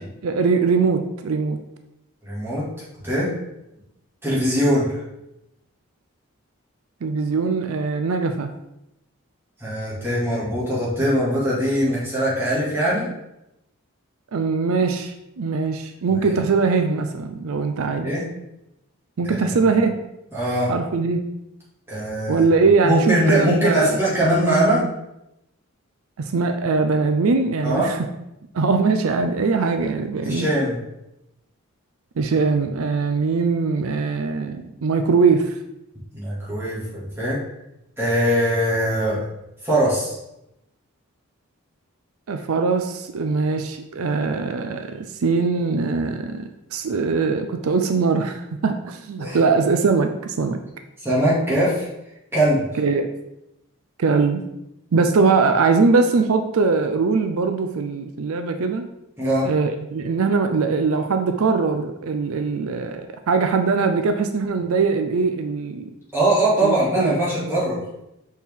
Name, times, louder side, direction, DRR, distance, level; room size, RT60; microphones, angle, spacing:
voice 1, 0.2-1.6 7.0-8.5 14.3-18.1 19.2-19.9 20.7-21.2 22.3-24.0 26.2-28.1 28.5-30.5 32.2-35.6 42.3-50.6 52.8-53.1 54.0-54.4 54.9-58.9 59.4-65.9 66.6-67.2, right 4 dB, 75° right, 7 dB, 0.4 m, -21 dB
voice 2, 2.2-2.7 3.0-3.3 4.2-4.9 9.6-13.1 16.1-16.3 18.0-18.3 19.3-19.4 20.3-20.7 21.9-22.4 22.8-24.9 27.6-27.9 30.2-30.8 36.1-37.4 38.0-39.3 39.6-40.2 49.2-49.4 51.0-51.9 52.3-52.7 59.2-59.5 66.1-67.8, right 1 dB, 10° right, -9 dB, 2.2 m, -21 dB
6.3 x 4.3 x 3.6 m, 0.87 s
head